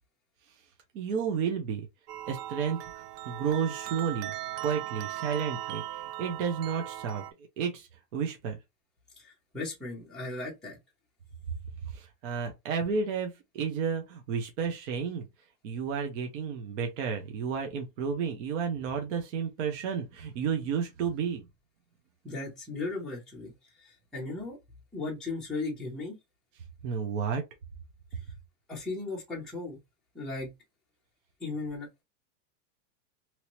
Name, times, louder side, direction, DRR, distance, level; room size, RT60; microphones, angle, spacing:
voice 1, 0.9-1.9 2.3-4.3 4.6-7.2 7.6-8.6 11.9-15.3 15.6-21.4 26.8-27.4, right 6 dB, 50° right, 0.9 m, -32 dB
sound 1, 2.1-7.3, right 14 dB, 80° right, 0.6 m, -38 dB
voice 2, 9.2-10.8 22.2-23.5 23.8-24.6 24.9-26.2 28.7-29.8 30.1-30.5 31.4-31.9, left 3 dB, ahead, 0.5 m, -36 dB
3.0 x 2.7 x 3.0 m
supercardioid pair, 165°, 48 cm